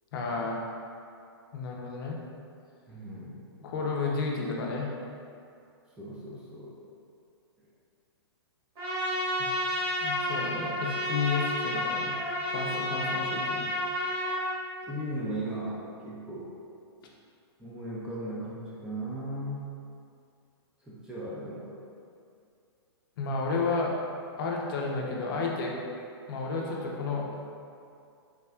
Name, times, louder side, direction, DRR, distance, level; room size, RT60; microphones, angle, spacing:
voice 1, 0.1-0.6 1.5-2.2 3.6-4.9 9.4-9.5 10.0-12.1 12.5-13.7 23.2-23.9 24.4-25.7 26.3-27.3, left 4 dB, 55° left, -1 dB, 0.5 m, -31 dB
voice 2, 2.9-3.4 6.0-6.8 14.9-16.5 17.6-19.7 20.8-21.8, right 1 dB, 5° right, -8 dB, 0.4 m, -37 dB
Trumpet, 8.7-14.5, left 1 dB, 45° right, 1.4 m, -30 dB
3.5 x 3.0 x 2.3 m, 2.4 s
hypercardioid pair, 140°, 14 cm